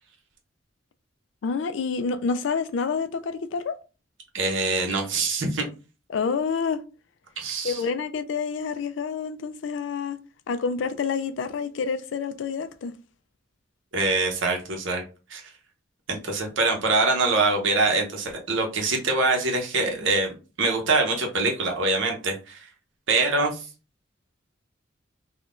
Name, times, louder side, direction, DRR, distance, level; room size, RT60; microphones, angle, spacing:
voice 1, 1.4-3.8 6.1-6.8 7.6-10.2 10.5-12.9, left 5 dB, 70° left, 0.3 m, -28 dB
voice 2, 4.3-5.7 7.4-7.8 13.9-15.0 15.3-15.4 16.1-20.3 20.6-22.7 23.1-23.7, right 3 dB, 75° right, 0.8 m, -24 dB
3.6 x 2.3 x 2.4 m
head